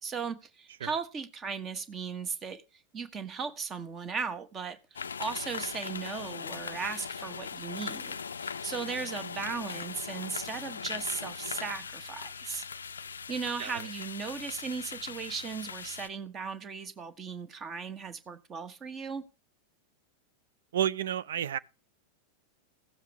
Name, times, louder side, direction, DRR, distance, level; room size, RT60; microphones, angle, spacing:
voice 1, 0.0-2.6 2.9-12.7 13.3-19.2, right 5 dB, 25° right, 1.4 m, -37 dB
sound 1, 5.0-16.1, left 6 dB, 70° left, 0.4 m, -40 dB
voice 2, 20.7-21.6, right 10 dB, 60° right, 0.5 m, -30 dB
16.5 x 7.2 x 3.6 m
figure-of-eight pair, 90°, 0 cm